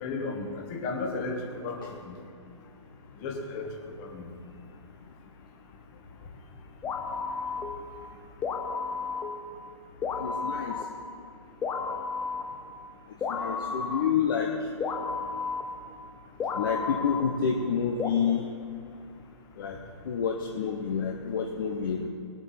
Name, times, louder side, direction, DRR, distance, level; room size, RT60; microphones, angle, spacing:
voice 1, 0.0-2.2 3.2-4.3, left 3 dB, 25° left, 2 dB, 1.5 m, -34 dB
sound 1, 6.8-7.9 8.4-9.5 10.0-10.8 11.6-12.4 13.2-14.0 14.8-15.6 16.4-17.2 18.0-18.1, left 5 dB, 10° left, 0.6 m, -32 dB
voice 2, 10.1-10.7 13.3-14.5 16.6-18.4 19.6-19.8 20.1-22.1, left 7 dB, 40° left, 2 dB, 0.9 m, -28 dB
19.0 x 8.0 x 4.3 m, 2.4 s
figure-of-eight pair, 125°, 16 cm